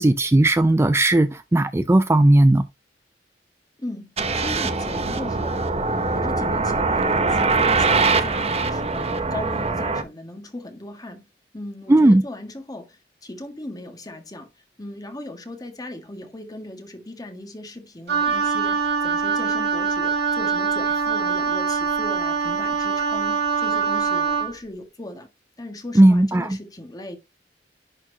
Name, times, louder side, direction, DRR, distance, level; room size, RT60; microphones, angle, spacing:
voice 1, 0.0-2.6 11.9-12.2 26.0-26.5, right 1 dB, 15° right, 0.4 m, -16 dB
voice 2, 3.8-11.2 11.5-14.5 14.8-25.3 25.6-27.2, left 1 dB, 20° left, 1.7 m, -37 dB
sound 1, 4.2-10.0, right 3 dB, 35° right, 0.8 m, -22 dB
Wind instrument woodwind instrument, 18.1-24.5, right 5 dB, 65° right, 1.7 m, -23 dB
11.0 x 4.4 x 2.8 m
head